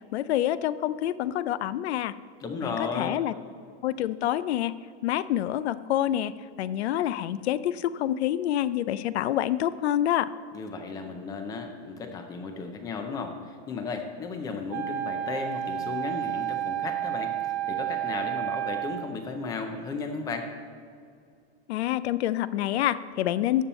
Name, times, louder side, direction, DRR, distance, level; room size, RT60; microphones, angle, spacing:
voice 1, 0.1-2.1 2.6-3.3 3.8-4.7 5.0-6.3 6.6-10.3 21.7-23.6, left 12 dB, 75° left, 16 dB, 0.5 m, -27 dB
voice 2, 2.4-3.2 10.5-17.3 17.7-20.5, left 4 dB, 10° left, 6 dB, 0.4 m, -34 dB
Wind instrument woodwind instrument, 14.7-19.1, right 13 dB, 80° right, 0.7 m, -31 dB
12.5 x 7.2 x 4.2 m, 2.3 s
supercardioid pair, 165°, 33 cm